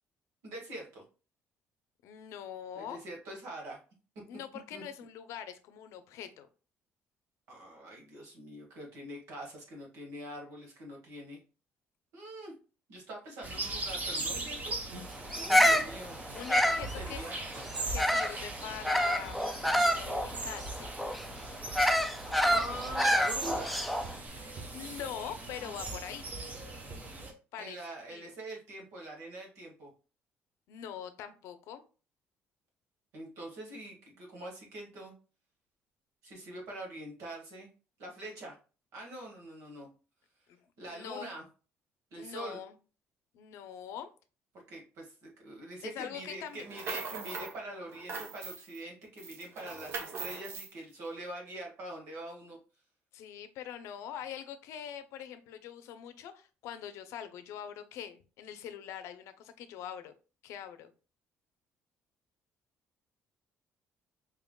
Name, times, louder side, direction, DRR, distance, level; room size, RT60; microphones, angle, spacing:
voice 1, 0.4-1.0 2.7-3.8 4.7-4.8 7.5-11.4 12.1-12.5 12.9-15.1 15.3-16.2 16.7-17.3 22.2-23.8 27.6-29.9 33.1-35.1 36.2-37.7 38.0-38.5 38.9-39.9 40.8-41.4 42.1-42.6 44.7-52.6, right 1 dB, 85° right, -1 dB, 1.9 m, -44 dB
voice 2, 2.0-3.0 4.3-6.5 15.6-17.2 17.9-19.4 19.7-20.9 24.3-26.3 27.5-28.3 30.7-31.8 40.5-40.6 40.9-41.2 42.2-42.7 43.3-44.1 45.8-46.7 46.9-47.0 53.1-60.1 60.4-60.9, left 9 dB, 80° left, 10 dB, 0.6 m, -43 dB
sound 1, 13.4-27.3, right 2 dB, 35° right, 1.0 m, -40 dB
Bird vocalization bird call bird song, 15.3-18.4 18.8-24.1, equal, ahead, 0.4 m, -28 dB
sound 2, 46.5-47.6 47.9-48.8 49.2-50.7, right 4 dB, 60° right, 0.8 m, -40 dB
4.5 x 3.6 x 2.2 m, 0.35 s
cardioid pair, 130°, 5 cm